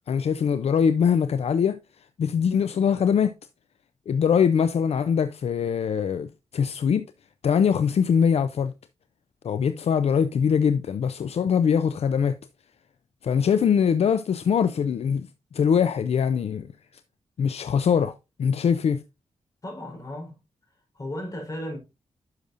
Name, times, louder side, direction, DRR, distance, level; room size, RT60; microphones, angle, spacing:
voice 1, 0.1-1.8 2.2-3.3 4.1-7.0 7.4-8.7 9.4-12.4 13.2-15.3 15.5-16.7 17.4-18.1 18.4-19.0, left 7 dB, 65° left, 0.5 m, -22 dB
voice 2, 19.6-20.4 20.9-21.8, left 1 dB, 30° left, 4.3 m, -35 dB
10.5 x 6.4 x 2.5 m
wide cardioid pair, 125°, 11 cm